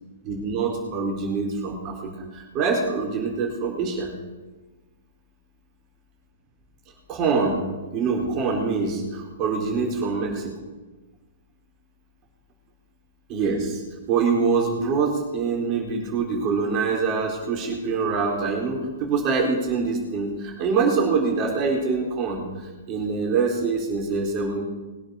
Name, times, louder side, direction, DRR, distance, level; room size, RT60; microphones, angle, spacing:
voice 1, 0.2-4.1 7.1-7.6 7.9-10.5 13.3-13.8 14.1-22.4 22.9-24.6, right 4 dB, 35° right, -1 dB, 4.1 m, -24 dB
21.0 x 7.9 x 6.7 m, 1.2 s
hypercardioid pair, 120°, 0 cm